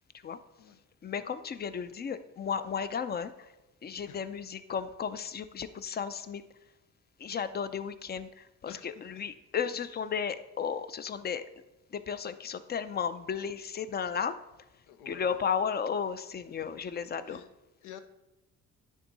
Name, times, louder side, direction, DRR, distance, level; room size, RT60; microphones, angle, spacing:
voice 1, 0.1-0.7 1.0-3.5 3.8-6.4 7.2-11.5 11.9-14.4 15.1-17.4, left 7 dB, 35° left, 12 dB, 0.5 m, -34 dB
voice 2, 14.9-15.3 17.3-17.4 17.8-18.0, left 10 dB, 85° left, 9 dB, 0.7 m, -47 dB
9.9 x 3.6 x 4.0 m, 0.98 s
cardioid pair, 90°, 30 cm